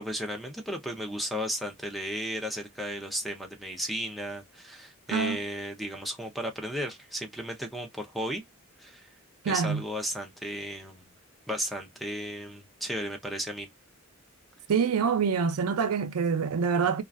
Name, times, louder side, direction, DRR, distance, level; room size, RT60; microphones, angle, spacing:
voice 1, 0.0-8.4 8.8-9.1 9.5-11.0 11.5-13.7, equal, ahead, 0.4 m, -34 dB
voice 2, 9.4-9.8 14.7-17.0, right 6 dB, 85° right, 0.5 m, -26 dB
2.4 x 2.2 x 2.4 m
head